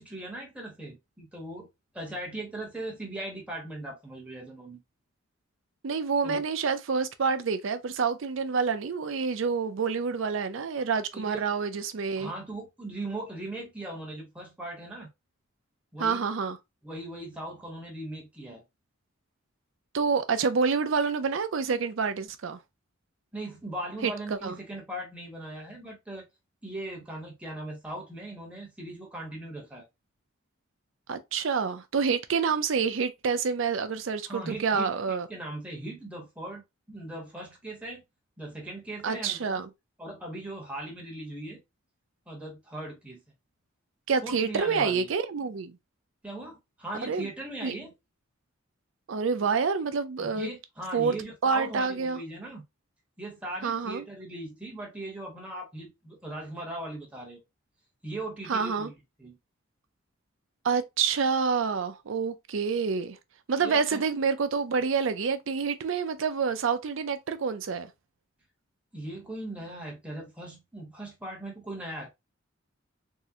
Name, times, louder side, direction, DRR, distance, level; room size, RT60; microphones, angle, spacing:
voice 1, 0.0-1.7 1.9-4.8 6.2-6.4 11.1-11.4 12.2-15.1 15.9-16.2 16.8-18.6 23.3-26.2 26.6-29.8 34.3-34.9 35.3-36.6 36.9-38.0 38.4-39.6 40.0-41.6 42.3-43.2 44.2-45.1 46.2-47.9 50.2-52.6 53.2-57.4 58.0-59.4 63.6-64.0 68.9-72.1, right 1 dB, 5° right, 0.9 m, -39 dB
voice 2, 5.8-12.3 16.0-16.6 19.9-22.6 24.0-24.5 31.1-35.3 39.0-39.7 44.1-45.7 47.0-47.3 47.6-47.7 49.1-50.5 50.9-51.1 51.4-52.2 53.6-54.0 58.5-58.9 60.6-63.2 63.5-67.9, right 5 dB, 65° right, 0.5 m, -28 dB
3.6 x 2.1 x 2.7 m
head